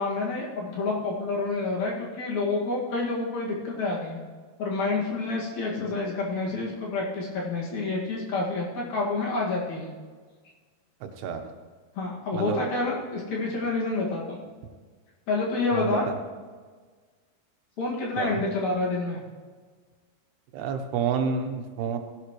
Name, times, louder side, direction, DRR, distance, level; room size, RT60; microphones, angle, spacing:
voice 1, 0.0-4.2 4.6-9.9 12.0-14.4 15.3-16.1 17.8-19.2, left 3 dB, 50° left, -3 dB, 3.0 m, -28 dB
voice 2, 12.3-12.7 15.7-16.0 18.2-18.4 20.5-22.0, right 6 dB, 80° right, 6 dB, 3.0 m, -29 dB
17.5 x 11.5 x 3.1 m, 1.5 s
omnidirectional pair, 4.7 m